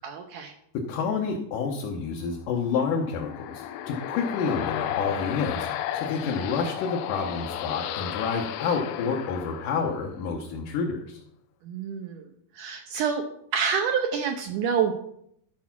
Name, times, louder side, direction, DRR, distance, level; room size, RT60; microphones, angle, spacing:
voice 1, 0.0-0.5 11.6-12.3 12.5-13.2 13.5-14.9, right 7 dB, 75° right, 5 dB, 1.9 m, -27 dB
voice 2, 0.9-5.7 5.9-11.2, left 5 dB, 70° left, 0 dB, 2.3 m, -29 dB
sound 1, 2.7-10.3, left 10 dB, 90° left, 2.7 m, -33 dB
12.5 x 4.9 x 5.9 m, 0.72 s
omnidirectional pair, 4.3 m